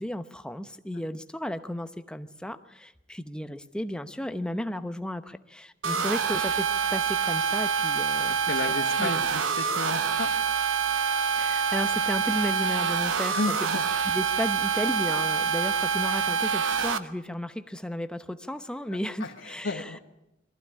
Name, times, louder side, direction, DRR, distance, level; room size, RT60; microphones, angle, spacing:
voice 1, 0.0-8.4 9.0-9.2 11.4-13.4 14.1-19.9, equal, 5° left, 10 dB, 0.8 m, -34 dB
sound 1, 5.8-17.0, right 6 dB, 75° right, 1.0 m, -26 dB
voice 2, 8.3-10.3 13.3-13.8 19.2-20.0, left 3 dB, 70° left, 1 dB, 1.3 m, -33 dB
22.0 x 15.0 x 9.9 m, 0.90 s
head